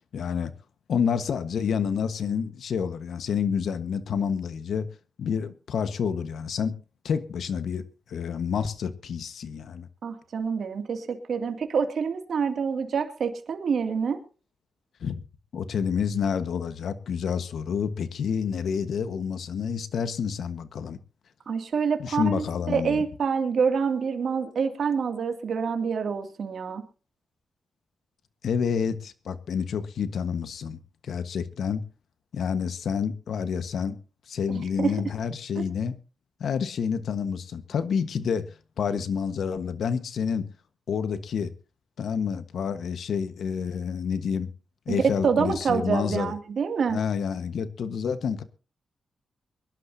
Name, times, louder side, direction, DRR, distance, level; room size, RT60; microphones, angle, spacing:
voice 1, 0.1-0.5 0.9-4.9 5.2-6.7 7.0-7.8 8.1-9.9 15.0-15.2 15.5-21.0 22.0-23.0 28.4-31.8 32.3-34.0 34.3-36.0 36.4-38.4 38.8-40.4 40.9-41.5 42.0-44.5 44.9-46.3 46.9-48.4, left 7 dB, 80° left, 1.3 m, -28 dB
voice 2, 10.0-14.2 21.5-26.8 34.5-34.9 35.6-35.7 44.9-47.0, right 6 dB, 70° right, 2.4 m, -27 dB
24.0 x 11.5 x 2.7 m
cardioid pair, 80°, 0 cm